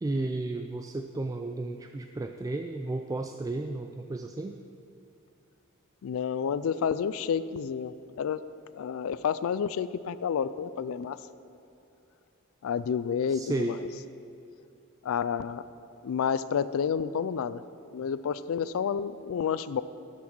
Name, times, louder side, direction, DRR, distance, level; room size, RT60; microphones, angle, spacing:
voice 1, 0.0-4.6 13.3-13.8, right 2 dB, 15° right, 5 dB, 0.3 m, -33 dB
voice 2, 6.0-8.4 8.7-11.2 12.6-13.8 15.0-15.6 16.0-17.6 17.9-19.8, left 7 dB, 70° left, 15 dB, 0.3 m, -30 dB
13.0 x 6.1 x 6.1 m, 2.7 s
head